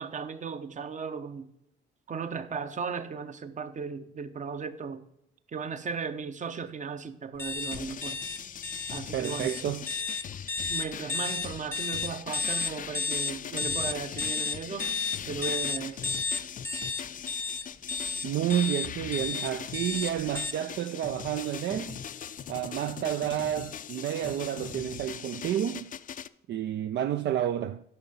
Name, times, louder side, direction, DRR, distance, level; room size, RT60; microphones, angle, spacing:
voice 1, 0.0-1.5 2.1-5.0 5.5-8.2 8.9-9.5 10.7-14.9 15.3-16.1, right 5 dB, 40° right, 0.9 m, -36 dB
sound 1, 7.4-20.5, left 4 dB, 10° left, 0.8 m, -32 dB
sound 2, 7.6-26.3, left 8 dB, 45° left, 0.4 m, -41 dB
voice 2, 9.1-9.9 18.2-22.0 22.5-25.9 26.5-27.8, right 11 dB, 60° right, 0.4 m, -30 dB
11.0 x 5.7 x 5.4 m
cardioid pair, 90°, 20 cm